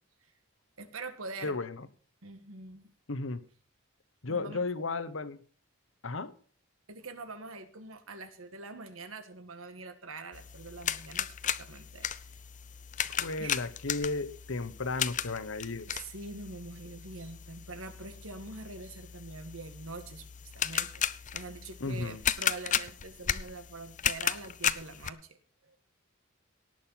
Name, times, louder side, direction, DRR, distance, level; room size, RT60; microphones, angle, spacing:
voice 1, 0.8-1.6 2.2-2.9 4.3-4.6 6.9-12.3 13.4-13.6 15.9-25.8, right 3 dB, 80° right, 9 dB, 1.8 m, -44 dB
voice 2, 1.4-1.9 3.1-3.4 4.2-5.4 6.0-6.3 13.0-15.9 21.8-22.2, left 3 dB, 70° left, 13 dB, 1.1 m, -34 dB
sound 1, 10.3-25.1, left 9 dB, 40° left, 0.6 m, -35 dB
18.0 x 6.5 x 5.8 m, 0.43 s
head